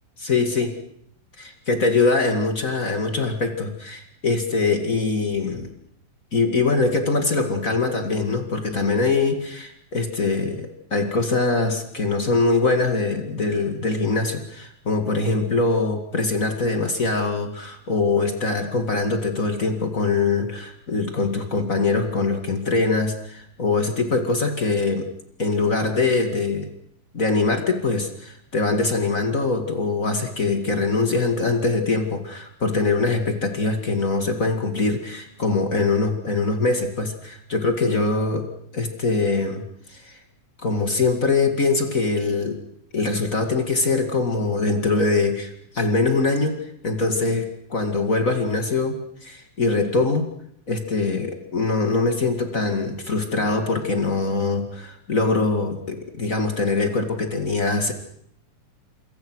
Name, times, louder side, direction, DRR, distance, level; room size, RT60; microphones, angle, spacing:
voice 1, 0.2-0.7 1.4-5.7 6.3-25.1 25.4-26.7 27.1-38.5 38.7-39.6 39.9-40.1 40.6-42.6 42.9-46.6 46.8-49.0 49.2-50.3 50.7-57.9, left 3 dB, 30° left, 5 dB, 1.6 m, -23 dB
27.5 x 24.0 x 6.3 m, 0.69 s
omnidirectional pair, 4.4 m